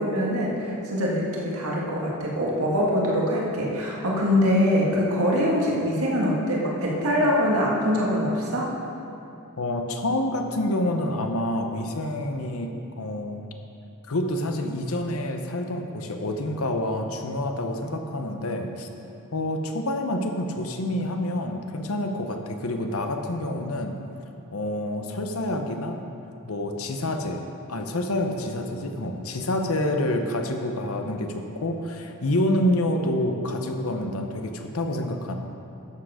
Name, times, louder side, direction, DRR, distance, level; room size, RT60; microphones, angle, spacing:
voice 1, 0.0-8.7, equal, 75° right, -3 dB, 1.8 m, -23 dB
voice 2, 9.6-13.4 14.1-18.9 19.3-24.0 24.5-26.0 26.4-35.3, left 1 dB, 70° left, 4 dB, 0.9 m, -28 dB
12.0 x 7.6 x 5.0 m, 2.8 s
head